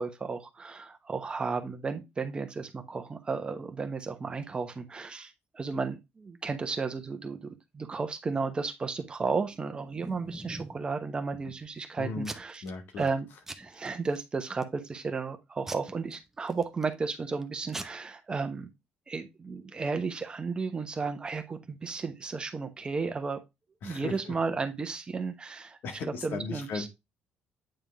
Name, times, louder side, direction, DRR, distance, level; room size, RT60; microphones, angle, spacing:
voice 1, 0.0-12.6 13.0-13.3 13.6-18.7 19.1-23.4 23.8-25.8 26.2-26.9, right 4 dB, 25° right, 1.1 m, -33 dB
Packing tape duct tape / Tearing, 9.5-10.8 11.3-11.8 12.2-12.7 13.0-13.2 13.5-14.2 14.6-15.0 15.7-16.9 17.4-17.5 17.7-17.8, right 2 dB, 10° right, 0.8 m, -42 dB
voice 2, 12.0-12.3 12.6-13.1 23.8-24.3 25.8-26.9, left 4 dB, 70° left, 1.7 m, -36 dB
8.9 x 3.7 x 3.4 m
cardioid pair, 120°, 4 cm